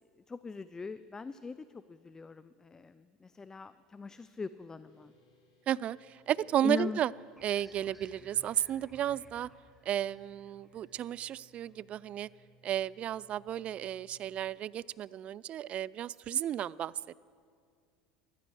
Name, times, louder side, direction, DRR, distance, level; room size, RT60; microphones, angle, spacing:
voice 1, 0.2-5.1 6.6-7.0, left 4 dB, 20° left, 14 dB, 0.4 m, -40 dB
sound 1, 4.8-14.4, equal, 75° left, 4.5 m, -66 dB
voice 2, 5.7-7.1 7.4-9.5 9.9-12.3 12.6-16.9, right 11 dB, 45° right, 23 dB, 0.3 m, -33 dB
sound 2, 7.4-12.7, right 1 dB, 5° right, 1.2 m, -60 dB
15.0 x 12.0 x 6.4 m, 2.2 s
hypercardioid pair, 80°, 3 cm